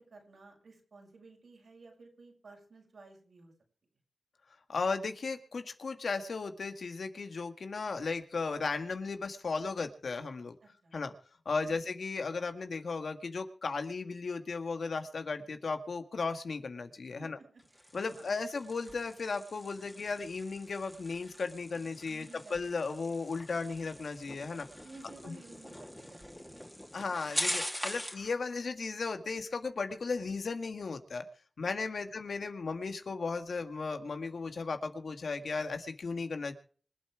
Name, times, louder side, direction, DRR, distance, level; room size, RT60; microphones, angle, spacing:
voice 1, 0.0-3.5 10.6-11.0 11.7-11.9 17.2-18.4 22.1-22.8 24.8-26.7 27.9-28.1 31.9-32.0, right 3 dB, 80° right, 1 dB, 6.3 m, -55 dB
voice 2, 4.7-10.6 10.9-11.1 11.5-17.4 17.9-24.7 25.2-25.4 26.9-31.3 31.6-36.5, left 4 dB, 80° left, 7 dB, 1.8 m, -35 dB
sound 1, 17.6-28.3, equal, 10° left, 2.8 m, -42 dB
26.0 x 8.7 x 4.7 m, 0.43 s
wide cardioid pair, 70°, 0 cm